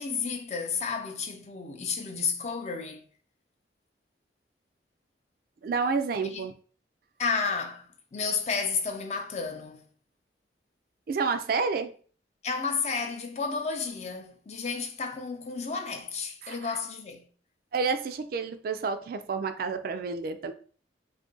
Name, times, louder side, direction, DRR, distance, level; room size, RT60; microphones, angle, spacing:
voice 1, 0.0-3.0 6.2-6.5 7.2-9.8 12.4-17.3, left 5 dB, 40° left, 0.5 m, -32 dB
voice 2, 5.6-6.5 11.1-11.9 16.4-16.8 17.7-20.5, right 4 dB, 55° right, 0.3 m, -29 dB
2.6 x 2.5 x 3.7 m
head